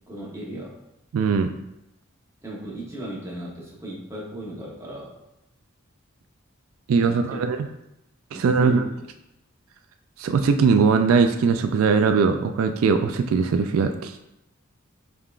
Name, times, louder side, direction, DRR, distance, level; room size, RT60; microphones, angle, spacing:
voice 1, 0.1-0.8 2.4-5.1 7.1-7.4 8.3-8.9, right 1 dB, 15° right, -5 dB, 1.0 m, -36 dB
voice 2, 1.1-1.5 6.9-7.6 8.3-8.8 10.2-14.2, right 5 dB, 80° right, 8 dB, 0.3 m, -20 dB
5.5 x 3.4 x 2.4 m, 0.87 s
head